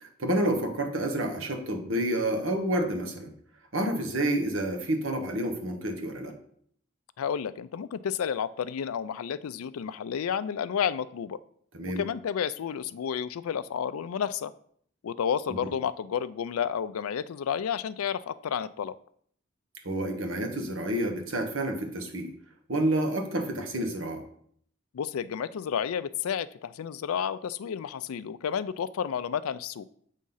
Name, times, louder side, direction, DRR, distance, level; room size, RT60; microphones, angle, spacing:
voice 1, 0.0-3.3 3.7-6.3 11.7-12.0 15.6-15.7 19.8-22.3 22.7-24.2, right 1 dB, 75° right, 4 dB, 1.2 m, -29 dB
voice 2, 7.2-11.4 12.0-14.5 15.0-19.0 24.9-29.8, left 8 dB, 90° left, 15 dB, 0.4 m, -31 dB
7.5 x 3.6 x 5.5 m, 0.63 s
head